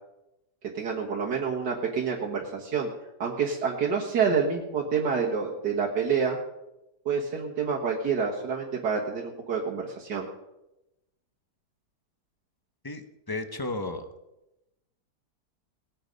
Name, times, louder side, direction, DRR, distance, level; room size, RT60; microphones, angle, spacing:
voice 1, 0.7-2.9 3.2-6.4 7.1-10.3, right 6 dB, 80° right, -3 dB, 2.1 m, -28 dB
voice 2, 12.8-14.1, left 2 dB, 20° left, 8 dB, 0.6 m, -34 dB
19.0 x 8.9 x 5.3 m, 0.94 s
omnidirectional pair, 1.8 m